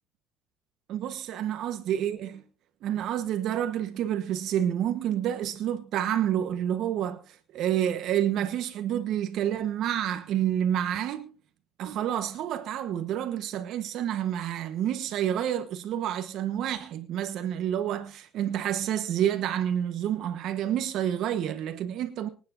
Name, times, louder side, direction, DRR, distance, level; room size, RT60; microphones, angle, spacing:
voice 1, 0.9-2.4 2.8-11.3 11.8-22.3, right 10 dB, 50° right, 1.2 m, -29 dB
25.5 x 9.5 x 2.6 m
cardioid pair, 170°, 0 cm